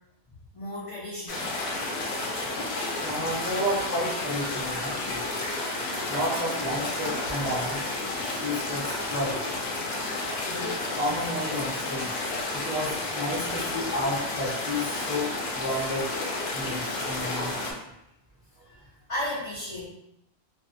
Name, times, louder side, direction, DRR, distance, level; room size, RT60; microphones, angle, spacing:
voice 1, 0.5-1.4 19.1-19.9, left 1 dB, 45° left, -7 dB, 0.4 m, -33 dB
sound 1, 1.3-17.7, left 2 dB, 70° left, 0.8 m, -31 dB
voice 2, 2.5-5.3 6.1-9.4 10.3-16.1 16.5-17.8, equal, 10° right, -8 dB, 0.5 m, -32 dB
2.5 x 2.0 x 2.4 m, 0.81 s
omnidirectional pair, 1.1 m